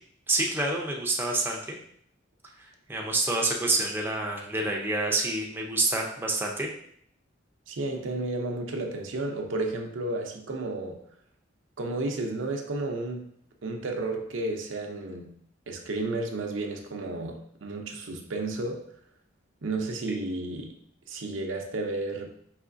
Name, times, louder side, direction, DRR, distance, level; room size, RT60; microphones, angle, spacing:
voice 1, 0.3-1.8 2.9-6.7 20.1-20.2, right 2 dB, 10° right, -1 dB, 0.5 m, -27 dB
voice 2, 7.7-11.0 11.8-13.3 13.6-15.4 15.7-18.8 19.6-20.7 21.1-22.3, right 2 dB, 70° right, 3 dB, 0.6 m, -32 dB
4.8 x 3.1 x 2.5 m, 0.67 s
head